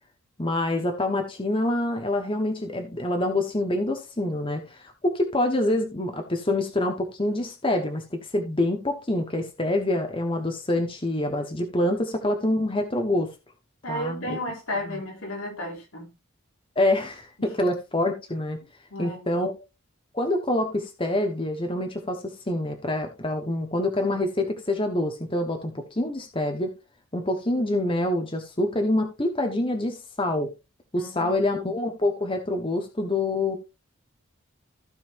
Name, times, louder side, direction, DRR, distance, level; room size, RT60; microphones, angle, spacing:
voice 1, 0.4-13.3 13.9-14.4 14.8-15.0 16.7-18.6 19.0-19.5 20.1-26.7 27.1-30.5 30.9-33.6, left 1 dB, 25° left, 1.2 m, -26 dB
voice 2, 13.8-16.1 17.4-17.5 18.9-19.3 30.9-31.3, left 1 dB, 80° left, 3.3 m, -33 dB
15.5 x 5.6 x 2.7 m
head